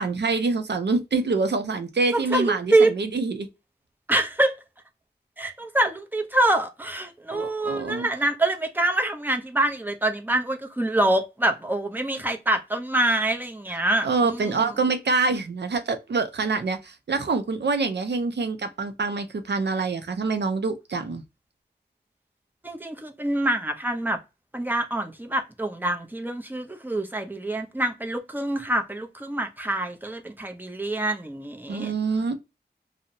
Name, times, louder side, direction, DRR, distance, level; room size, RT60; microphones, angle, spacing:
voice 1, 0.0-3.5 7.3-8.1 14.0-21.2 31.7-32.4, right 4 dB, 75° right, 0.5 m, -26 dB
voice 2, 2.1-2.9 4.1-4.5 5.4-14.7 22.6-24.2 24.5-31.9, right 1 dB, 10° right, 0.5 m, -25 dB
2.7 x 2.0 x 2.6 m
wide cardioid pair, 60°, 18 cm